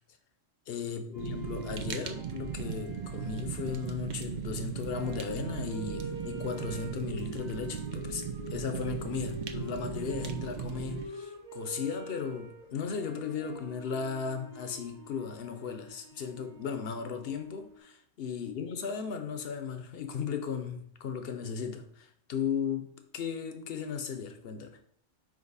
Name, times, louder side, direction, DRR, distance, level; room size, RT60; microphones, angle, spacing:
voice 1, 0.7-24.8, left 6 dB, 55° left, 0.9 m, -36 dB
sound 1, 1.1-17.8, equal, 40° right, 0.9 m, -46 dB
Fire, 1.2-11.0, right 7 dB, 55° right, 0.5 m, -38 dB
5.2 x 4.6 x 4.0 m
omnidirectional pair, 1.3 m